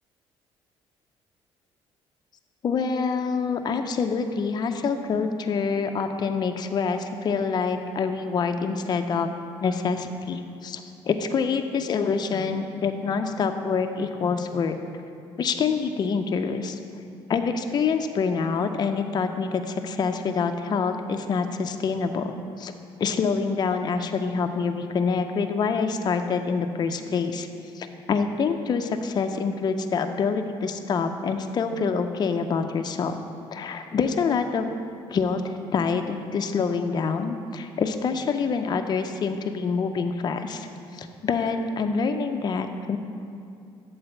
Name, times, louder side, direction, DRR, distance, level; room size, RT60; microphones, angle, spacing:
voice 1, 2.6-9.3 9.6-14.8 15.4-16.8 17.3-22.3 22.6-22.7 23.0-27.5 27.7-33.1 33.5-34.7 35.1-40.7 40.9-43.0, left 5 dB, 40° left, 6 dB, 0.5 m, -26 dB
7.7 x 4.0 x 6.8 m, 2.5 s
cardioid pair, 90°, 11 cm